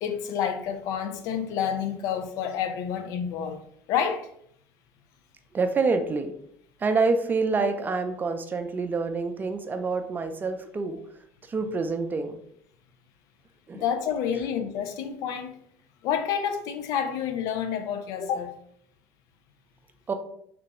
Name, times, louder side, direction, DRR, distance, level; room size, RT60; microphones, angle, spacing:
voice 1, 0.0-3.6 3.9-4.3 13.7-15.5 16.0-18.6, left 8 dB, 70° left, 0.5 m, -29 dB
voice 2, 5.5-6.3 6.8-11.0 11.5-12.4 13.7-13.8 20.1-20.2, right 4 dB, 30° right, 0.5 m, -27 dB
3.3 x 2.9 x 2.9 m
supercardioid pair, 75°, 6 cm